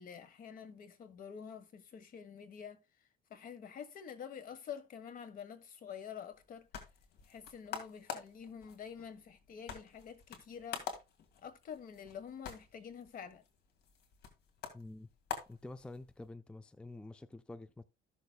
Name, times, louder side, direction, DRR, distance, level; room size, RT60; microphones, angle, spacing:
voice 1, 0.0-2.8 3.3-6.7 7.3-10.8 11.4-13.4, left 7 dB, 55° left, 1.4 m, -48 dB
sound 1, 6.3-16.3, left 7 dB, 75° left, 2.1 m, -47 dB
voice 2, 14.7-15.1 15.5-17.8, left 2 dB, 5° left, 0.4 m, -48 dB
14.0 x 6.5 x 2.3 m
cardioid pair, 110°, 17 cm